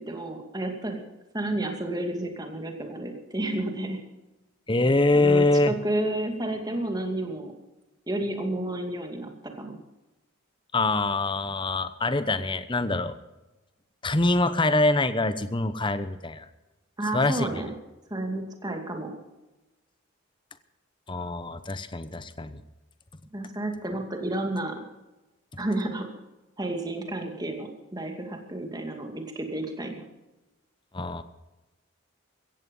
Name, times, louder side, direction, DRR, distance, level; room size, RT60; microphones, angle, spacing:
voice 1, 0.1-1.0 1.3-4.0 5.1-7.5 8.1-9.3 9.6-9.8 17.0-17.7 18.1-19.1 23.3-24.8 25.6-26.1 26.6-30.0, right 1 dB, 20° right, 4 dB, 2.4 m, -31 dB
voice 2, 4.7-5.7 10.7-13.2 14.0-16.5 17.1-17.6 21.1-22.6 30.9-31.2, left 2 dB, 25° left, 12 dB, 0.9 m, -24 dB
16.5 x 15.0 x 5.5 m, 1.0 s
head